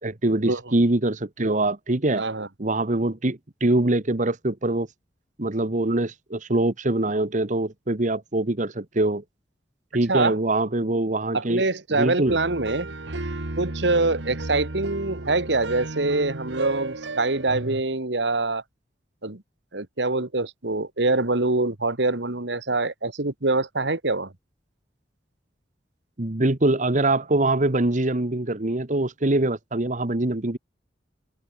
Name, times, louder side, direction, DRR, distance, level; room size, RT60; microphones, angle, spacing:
voice 1, 0.0-2.2 2.6-4.9 5.4-9.2 9.9-11.6 11.9-12.4 26.2-30.6, right 2 dB, 45° right, 1.4 m, -23 dB
voice 2, 2.2-2.5 10.1-10.4 11.3-12.9 13.6-18.6 19.2-19.4 19.7-24.3, right 2 dB, 70° right, 2.0 m, -24 dB
sound 1, 12.3-17.8, right 2 dB, 90° right, 1.6 m, -32 dB
head